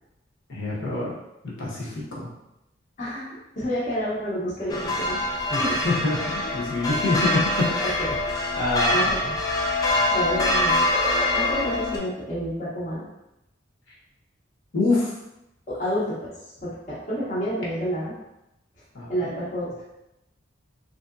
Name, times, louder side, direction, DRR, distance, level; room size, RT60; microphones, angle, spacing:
voice 1, 0.5-1.1 1.6-2.3 5.5-8.2 8.6-9.4 14.7-15.1 18.9-19.3, left 2 dB, 75° left, -6 dB, 1.0 m, -26 dB
voice 2, 3.0-3.3 3.6-5.3 5.6-5.8 6.4-6.8 7.8-8.2 8.9-9.2 10.1-10.9 11.3-13.1 15.7-16.3 16.6-18.1 19.1-19.7, equal, 40° left, -8 dB, 0.7 m, -29 dB
sound 1, 4.7-12.0, left 1 dB, 20° left, 0.4 m, -24 dB
3.2 x 2.7 x 2.5 m, 0.90 s
head